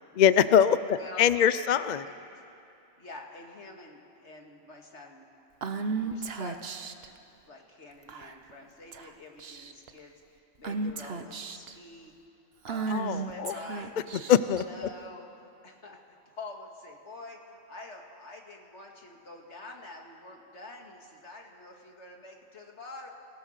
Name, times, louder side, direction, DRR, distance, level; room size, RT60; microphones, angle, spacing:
voice 1, 0.2-2.1 12.9-13.6 14.3-14.6, left 9 dB, 50° left, 14 dB, 0.6 m, -23 dB
voice 2, 0.9-1.2 1.7-2.1 3.0-5.3 5.7-6.9 7.4-12.1 12.6-14.3 14.6-15.3 15.6-23.1, left 2 dB, 80° left, 1 dB, 2.5 m, -47 dB
Female speech woman speaking / Whispering, 5.6-7.1 8.1-8.5 8.9-9.1 9.4-9.9 10.6-11.7 12.6-14.6, right 4 dB, 65° right, 1.1 m, -34 dB
27.5 x 17.5 x 6.6 m, 2.9 s
omnidirectional pair, 1.1 m